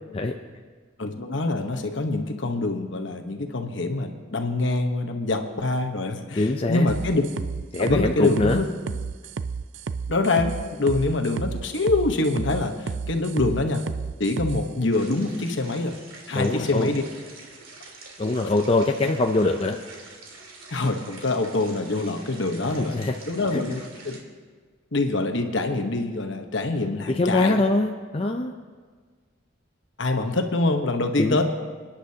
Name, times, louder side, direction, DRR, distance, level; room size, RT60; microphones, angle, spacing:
voice 1, 1.0-7.2 7.8-8.7 10.1-13.9 14.2-15.9 16.3-17.0 20.7-24.2 24.9-27.6 30.0-31.4, left 2 dB, 65° left, 5 dB, 1.1 m, -25 dB
voice 2, 6.4-6.9 7.7-8.6 16.3-16.9 18.2-19.8 22.8-23.1 23.5-23.6 27.1-28.5 31.2-31.4, left 2 dB, 30° left, 3 dB, 0.5 m, -23 dB
sound 1, 6.9-14.6, right 5 dB, 65° right, 0.4 m, -31 dB
sound 2, 14.9-24.2, right 3 dB, 85° right, 2.5 m, -46 dB
28.0 x 10.0 x 2.9 m, 1.5 s
head